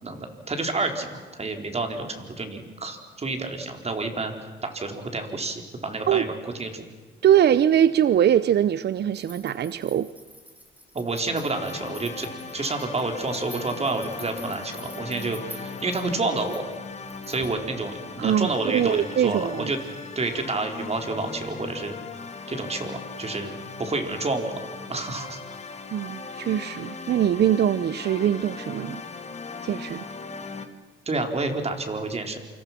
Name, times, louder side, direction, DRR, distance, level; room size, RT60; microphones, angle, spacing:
voice 1, 0.0-4.3 4.6-6.8 10.9-16.6 17.3-19.8 20.1-22.0 22.5-23.5 23.8-24.6 24.9-25.4 26.6-26.7 31.1-32.4, right 3 dB, 30° right, 4 dB, 4.5 m, -29 dB
voice 2, 7.2-10.1 18.2-19.7 25.9-29.0 29.6-30.0, right 10 dB, 55° right, 15 dB, 0.8 m, -22 dB
sound 1, 9.1-17.6, equal, 10° right, 3.9 m, -48 dB
sound 2, 11.5-30.7, left 4 dB, 35° left, 2.4 m, -38 dB
28.0 x 27.0 x 6.1 m, 1.5 s
cardioid pair, 90°, 20 cm